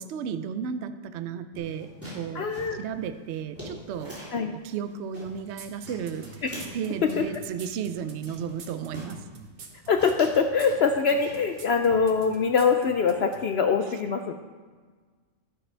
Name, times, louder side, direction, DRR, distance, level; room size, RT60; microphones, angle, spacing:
voice 1, 0.0-1.9 2.1-6.3 6.7-9.2, right 7 dB, 65° right, 10 dB, 0.8 m, -34 dB
sound 1, 1.5-4.4 4.8-5.6 5.8-7.4 7.9-8.0 8.3-9.2 9.6-9.7 10.0-11.6 11.9-12.5, equal, 10° right, 3.2 m, -43 dB
voice 2, 2.3-2.8 4.3-4.5 7.2-7.3 9.9-14.3, left 5 dB, 60° left, 5 dB, 0.7 m, -23 dB
sound 2, 5.6-13.4, right 5 dB, 85° right, 1.5 m, -46 dB
11.5 x 10.5 x 3.3 m, 1.5 s
omnidirectional pair, 1.4 m